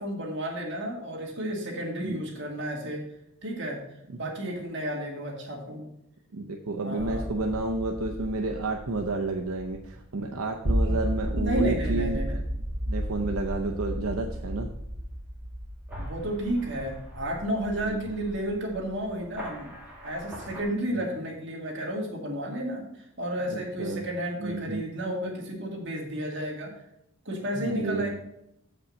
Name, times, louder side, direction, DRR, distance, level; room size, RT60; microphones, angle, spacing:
voice 1, 0.0-3.0 3.4-3.8 4.1-5.9 6.8-7.3 10.8-11.0 11.3-12.4 16.0-19.7 20.0-26.7 27.3-28.1, right 1 dB, 55° right, -1 dB, 2.1 m, -32 dB
voice 2, 6.3-12.4 12.9-14.7 17.8-18.1 20.9-21.0 23.5-24.1 24.4-24.8 27.5-28.1, right 2 dB, 80° right, 2 dB, 0.7 m, -31 dB
sound 1, 7.0-20.6, equal, 5° right, 1.9 m, -33 dB
7.1 x 5.3 x 6.3 m, 0.81 s
head